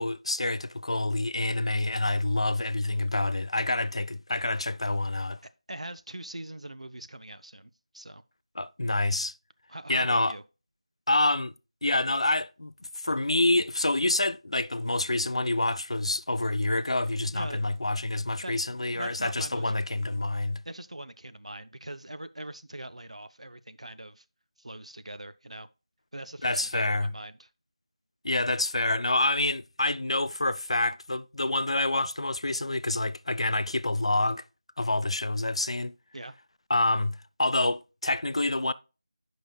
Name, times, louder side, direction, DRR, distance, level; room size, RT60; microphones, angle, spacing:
voice 1, 0.0-5.4 8.6-9.3 9.9-10.4 11.1-11.5 11.8-20.6 26.4-27.1 28.2-34.4 34.8-35.9 36.7-38.7, left 2 dB, 60° left, 0.3 m, -27 dB
voice 2, 5.7-8.2 9.7-10.4 17.3-17.6 18.4-18.5 18.9-19.7 20.6-24.2 24.6-25.7 26.1-27.5 36.1-36.4, right 1 dB, 75° right, 0.5 m, -42 dB
9.4 x 5.2 x 2.2 m
figure-of-eight pair, 170°, 3 cm